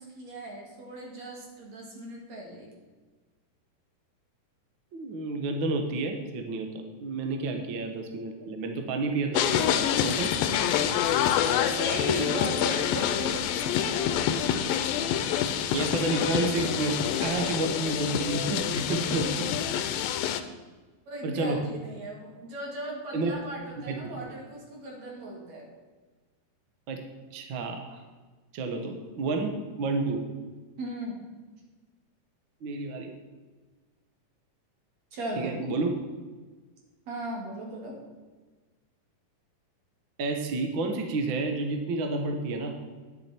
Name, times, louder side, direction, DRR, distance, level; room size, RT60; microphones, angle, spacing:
voice 1, 0.0-2.7 7.5-7.6 11.6-14.3 21.1-25.7 28.7-28.9 30.8-31.3 35.1-35.6 37.1-38.0, right 1 dB, 50° right, -2 dB, 3.6 m, -37 dB
voice 2, 4.9-10.3 15.7-19.6 21.2-21.7 23.1-23.4 23.9-24.3 26.9-27.0 27.3-28.0 28.5-30.2 32.6-33.1 35.4-35.9 40.2-42.8, right 3 dB, 80° right, 4 dB, 1.1 m, -30 dB
sound 1, 9.3-20.4, left 9 dB, 90° left, 2.4 m, -27 dB
11.0 x 10.5 x 4.4 m, 1.3 s
omnidirectional pair, 4.1 m